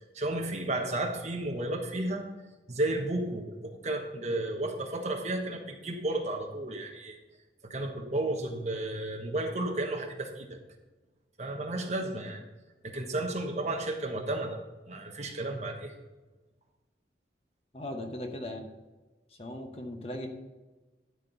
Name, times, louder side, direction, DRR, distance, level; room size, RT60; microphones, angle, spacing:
voice 1, 0.1-2.3 2.7-7.2 7.6-10.5 11.4-12.4 12.8-14.6 14.9-15.9, right 2 dB, 35° right, 3 dB, 1.2 m, -33 dB
voice 2, 17.7-18.7 19.3-20.3, left 1 dB, 30° left, 3 dB, 1.0 m, -38 dB
12.5 x 4.5 x 6.8 m, 1.1 s
head